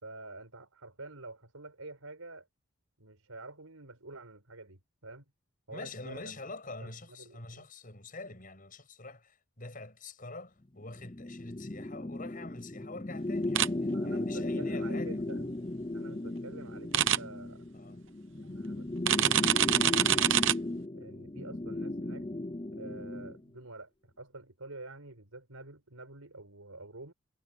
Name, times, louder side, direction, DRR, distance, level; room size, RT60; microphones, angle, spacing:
voice 1, 0.0-2.5 3.0-5.3 5.7-6.3 6.8-7.7 13.9-15.5 15.9-17.6 18.4-20.3 20.9-22.3 22.7-27.1, right 2 dB, 85° right, 5.3 m, -48 dB
voice 2, 5.7-15.2 17.7-18.0, left 3 dB, 40° left, 6.9 m, -46 dB
sound 1, 11.0-23.4, left 2 dB, 25° left, 0.7 m, -36 dB
sound 2, 13.6-13.7 16.9-17.2 19.1-20.5, right 10 dB, 60° right, 0.9 m, -24 dB
head